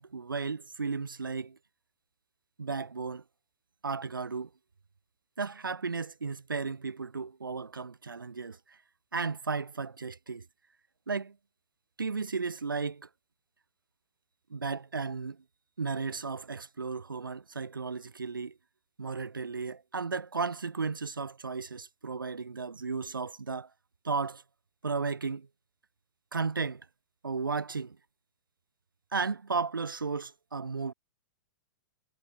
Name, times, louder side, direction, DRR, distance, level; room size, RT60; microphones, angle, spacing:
voice 1, 0.0-1.6 2.6-3.2 3.8-4.5 5.4-8.8 9.1-10.5 11.1-11.4 12.0-13.1 14.5-15.4 15.8-18.5 19.0-23.7 24.0-24.4 24.8-25.5 26.3-26.9 27.2-28.0 29.1-30.9, right 4 dB, 85° right, 0.5 m, -34 dB
figure-of-eight pair, 105°, 11 cm